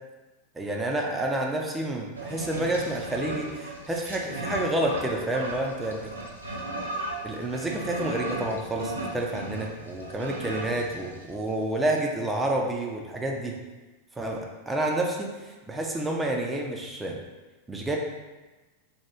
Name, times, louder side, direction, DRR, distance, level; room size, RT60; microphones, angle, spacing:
voice 1, 0.6-6.1 7.2-13.6 14.2-17.2 17.7-18.0, right 1 dB, 10° right, 0 dB, 0.4 m, -29 dB
sound 1, 2.1-11.6, right 2 dB, 80° right, 0.4 m, -36 dB
2.9 x 2.2 x 3.4 m, 1.2 s
figure-of-eight pair, 90°, 0 cm